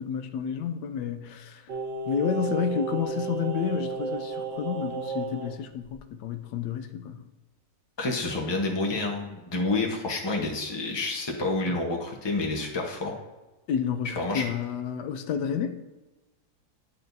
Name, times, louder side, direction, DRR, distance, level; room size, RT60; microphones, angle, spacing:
voice 1, 0.0-1.6 2.1-7.2 13.7-15.8, left 8 dB, 85° left, 1.2 m, -30 dB
Singing, 1.7-5.5 5.9-6.0, right 4 dB, 85° right, 1.9 m, -33 dB
voice 2, 8.0-13.1 14.2-14.4, left 2 dB, 20° left, 0.8 m, -29 dB
11.0 x 4.3 x 2.7 m
omnidirectional pair, 1.7 m